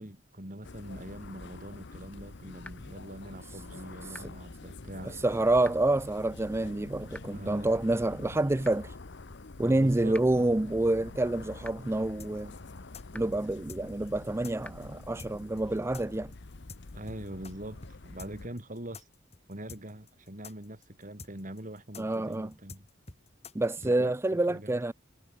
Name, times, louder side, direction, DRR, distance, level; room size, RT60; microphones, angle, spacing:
voice 1, 0.0-5.2 7.3-7.7 9.6-10.5 14.9-15.0 16.9-19.1 19.5-22.9 23.8-24.1 24.5-24.8, right 1 dB, 40° right, 4.7 m, -43 dB
sound 1, 0.6-18.5, left 3 dB, 65° left, 1.0 m, -46 dB
sound 2, 2.6-2.7 4.1-4.2 5.6-5.7 7.1-7.2 8.6-8.7 10.1-10.2 11.6-11.7 13.1-13.2 14.6-14.7, left 1 dB, 5° left, 1.3 m, -44 dB
voice 2, 5.2-8.9 9.6-12.5 13.1-16.3 22.0-22.5 23.5-24.9, right 2 dB, 15° right, 0.4 m, -28 dB
sound 3, 12.2-17.5 17.8-17.9 18.2-23.9, left 4 dB, 35° left, 4.3 m, -47 dB
head